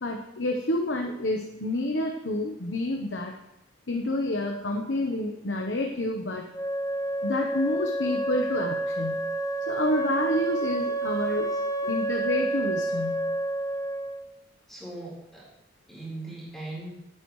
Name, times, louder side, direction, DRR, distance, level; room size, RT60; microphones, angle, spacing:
voice 1, 0.0-3.3 3.9-6.5 7.2-9.2 9.7-11.5 11.8-13.3, left 1 dB, 75° left, 2 dB, 1.1 m, -29 dB
Wind instrument woodwind instrument, 6.5-14.3, right 2 dB, 20° left, 0.8 m, -29 dB
voice 2, 14.7-15.5 15.9-16.9, right 2 dB, ahead, -6 dB, 4.4 m, -39 dB
18.5 x 10.0 x 3.2 m, 0.84 s
head